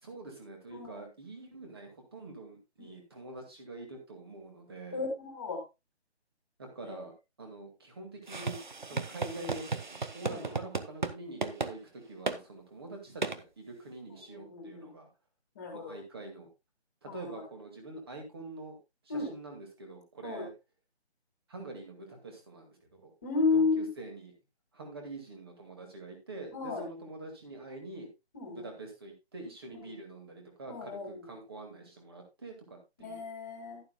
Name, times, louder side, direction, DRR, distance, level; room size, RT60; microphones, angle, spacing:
voice 1, 0.0-5.0 6.6-7.1 7.4-15.1 15.7-16.5 17.0-18.8 19.0-20.5 21.5-23.1 23.5-24.3 24.7-28.1 28.5-33.3, right 2 dB, 20° right, 2 dB, 2.1 m, -46 dB
voice 2, 0.7-1.1 2.8-3.0 4.9-5.6 6.8-7.0 7.6-7.7 8.9-9.1 10.3-10.6 14.3-14.9 15.5-16.0 17.1-17.4 19.1-19.3 20.2-20.4 23.2-23.9 26.5-26.8 28.3-28.7 29.7-29.9 30.7-31.3 33.0-33.8, left 4 dB, 15° left, 1 dB, 2.3 m, -33 dB
sound 1, 8.3-11.1 11.4-11.7 12.3-12.4 13.2-13.4, right 4 dB, 45° right, 0.9 m, -34 dB
11.5 x 11.0 x 2.3 m, 0.24 s
figure-of-eight pair, 175°, 33 cm